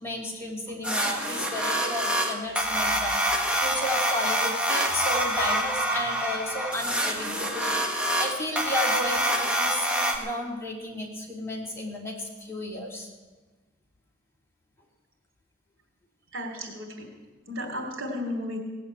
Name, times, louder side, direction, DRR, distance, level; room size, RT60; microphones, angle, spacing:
voice 1, 0.0-13.1, left 1 dB, 15° left, -1 dB, 2.6 m, -33 dB
sound 1, 0.8-10.2, equal, 5° right, 1.6 m, -26 dB
voice 2, 16.3-17.1 17.5-18.6, left 1 dB, 80° right, 3 dB, 3.3 m, -33 dB
17.5 x 8.2 x 8.5 m, 1.2 s
head